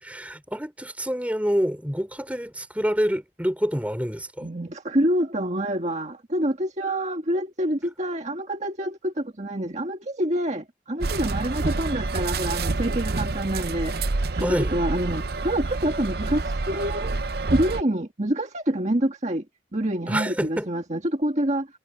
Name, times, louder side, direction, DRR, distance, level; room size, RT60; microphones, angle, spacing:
voice 1, 0.0-4.5 14.4-14.8 20.1-20.7, equal, 10° right, 3.4 m, -27 dB
voice 2, 4.4-13.9 14.4-17.2 17.5-19.4 19.7-21.7, right 1 dB, 40° right, 1.8 m, -27 dB
sound 1, 11.0-17.8, right 3 dB, 55° right, 0.7 m, -28 dB
head